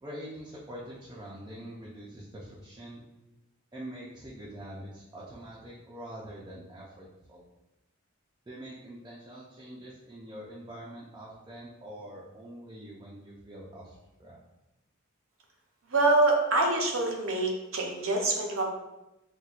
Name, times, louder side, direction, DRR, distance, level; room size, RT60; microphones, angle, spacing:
voice 1, 0.0-3.0 3.7-7.5 8.5-13.9 14.2-14.4, right 1 dB, 20° right, -6 dB, 0.4 m, -44 dB
voice 2, 15.9-18.6, right 2 dB, 75° right, 1 dB, 0.6 m, -25 dB
4.2 x 2.2 x 2.4 m, 0.97 s
head